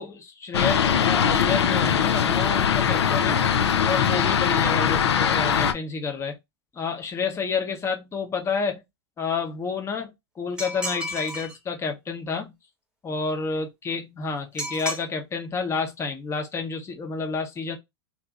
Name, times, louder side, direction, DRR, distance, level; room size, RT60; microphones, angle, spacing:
voice 1, 0.0-3.4 3.8-6.4 6.7-8.8 9.2-10.1 10.4-12.5 13.0-17.8, left 5 dB, 20° left, 0.8 m, -29 dB
Fixed-wing aircraft airplane, 0.5-5.7, left 7 dB, 85° left, 0.5 m, -21 dB
sound 1, 10.6-11.6 14.6-15.0, equal, 5° right, 1.0 m, -32 dB
2.8 x 2.7 x 2.3 m
hypercardioid pair, 110°, 14 cm